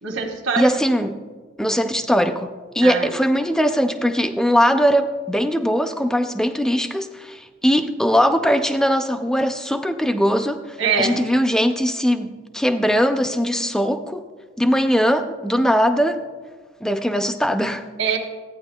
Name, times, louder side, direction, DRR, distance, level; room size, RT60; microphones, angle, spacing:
voice 1, 0.0-0.7 2.8-3.1 10.8-11.2 18.0-18.2, right 5 dB, 70° right, 2 dB, 1.1 m, -23 dB
voice 2, 0.6-1.1 1.6-14.2 14.6-16.2 16.8-17.8, equal, 5° left, 8 dB, 0.4 m, -20 dB
14.0 x 9.4 x 2.3 m, 1.4 s
head